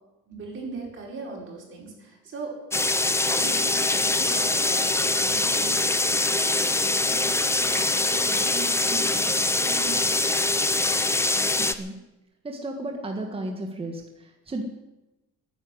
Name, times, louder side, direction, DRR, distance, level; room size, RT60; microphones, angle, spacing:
voice 1, 0.3-2.6 3.0-10.5, right 3 dB, 40° right, -2 dB, 6.0 m, -39 dB
sound 1, 2.7-11.8, left 2 dB, 10° left, 0.7 m, -23 dB
voice 2, 11.6-11.9 12.4-14.0 14.5-14.6, right 2 dB, 15° right, 3 dB, 1.6 m, -33 dB
13.5 x 10.0 x 9.6 m, 1.0 s
cardioid pair, 155°, 32 cm